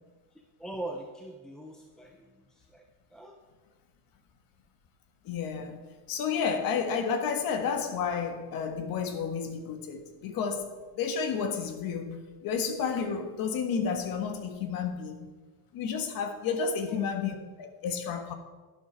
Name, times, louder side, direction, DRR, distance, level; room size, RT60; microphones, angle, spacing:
voice 1, 0.3-2.8 3.1-3.4 16.6-17.0, right 1 dB, ahead, 0.5 m, -42 dB
voice 2, 5.2-15.3 15.7-18.3, left 6 dB, 50° left, 1.5 m, -31 dB
11.0 x 11.0 x 4.5 m
cardioid pair, 165°, 43 cm